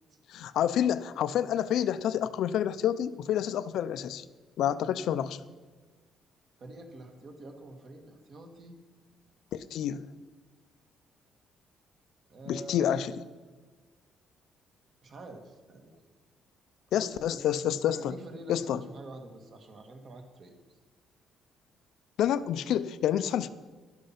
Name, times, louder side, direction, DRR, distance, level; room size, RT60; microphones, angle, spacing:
voice 1, 0.3-4.2 4.6-5.4 9.5-10.0 12.5-13.1 16.9-18.1 18.5-18.8 22.2-23.5, left 10 dB, 70° left, 13 dB, 0.5 m, -28 dB
voice 2, 6.6-8.8 12.3-13.0 15.0-16.1 16.9-17.4 17.8-20.6, right 2 dB, 45° right, 4 dB, 1.8 m, -46 dB
12.0 x 11.5 x 5.8 m, 1.3 s
cardioid pair, 155°, 0 cm